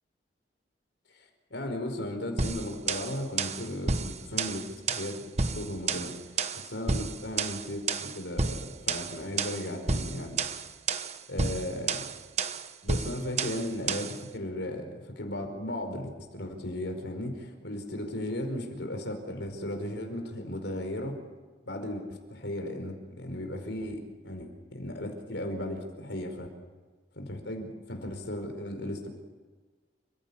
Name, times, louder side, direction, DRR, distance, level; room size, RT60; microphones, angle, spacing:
voice 1, 1.5-10.4 11.3-12.1 12.8-21.2 21.6-26.5 27.1-29.1, left 1 dB, 80° left, 5 dB, 5.0 m, -36 dB
sound 1, 2.4-14.2, right 4 dB, 35° right, 1.2 m, -31 dB
30.0 x 16.0 x 8.6 m, 1.4 s
head